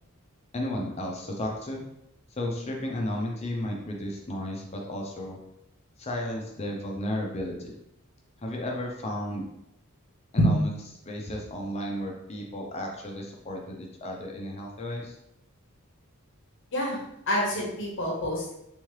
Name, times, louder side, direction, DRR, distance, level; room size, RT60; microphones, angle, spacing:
voice 1, 0.5-1.8 2.4-5.4 6.0-7.7 8.4-9.4 10.3-10.7 11.1-15.2, left 1 dB, 30° left, 0 dB, 0.5 m, -33 dB
voice 2, 17.3-18.5, equal, 55° left, -2 dB, 0.9 m, -26 dB
3.6 x 3.1 x 3.1 m, 0.79 s
head